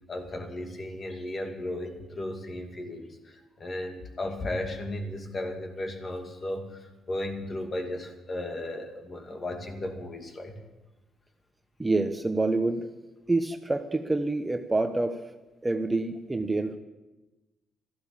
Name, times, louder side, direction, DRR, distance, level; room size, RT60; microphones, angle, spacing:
voice 1, 0.1-10.5, left 1 dB, 40° left, 4 dB, 2.5 m, -35 dB
voice 2, 11.8-12.9 13.3-15.2 15.6-16.8, right 2 dB, 15° right, 7 dB, 1.0 m, -27 dB
13.5 x 12.0 x 7.2 m, 1.1 s
cardioid pair, 90°, 0 cm